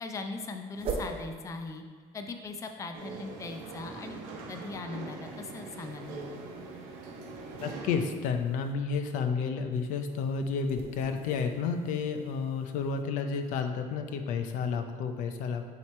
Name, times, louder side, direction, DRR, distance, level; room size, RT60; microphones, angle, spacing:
voice 1, 0.0-1.8 2.1-4.2 4.5-6.3, left 3 dB, 25° left, 5 dB, 0.5 m, -39 dB
sound 1, 0.7-1.2 5.2-8.7 9.7-13.0, right 4 dB, 45° right, 0.9 m, -43 dB
sound 2, 2.9-8.0, right 3 dB, 85° right, 1.0 m, -42 dB
voice 2, 7.6-15.7, left 5 dB, 70° left, 6 dB, 0.6 m, -31 dB
9.2 x 3.1 x 4.4 m, 1.5 s
cardioid pair, 115°, 14 cm